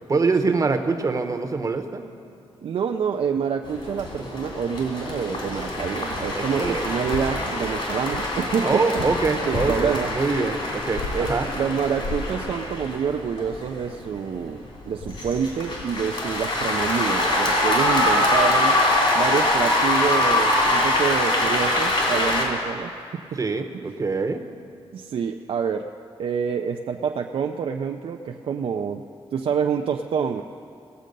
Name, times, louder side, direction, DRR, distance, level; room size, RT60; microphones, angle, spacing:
voice 1, 0.1-2.1 6.4-6.8 8.6-11.0 11.3-11.5 23.4-24.4, right 4 dB, 35° right, 6 dB, 0.8 m, -24 dB
voice 2, 2.6-9.1 9.5-10.1 11.1-18.8 19.1-23.3 23.7-23.8 24.9-25.9 26.2-29.0 29.3-30.4, right 7 dB, 70° right, 3 dB, 0.4 m, -27 dB
sound 1, 3.6-22.4, left 1 dB, 65° left, 2.9 m, -24 dB
18.5 x 7.5 x 5.3 m, 2.6 s
wide cardioid pair, 115°, 10 cm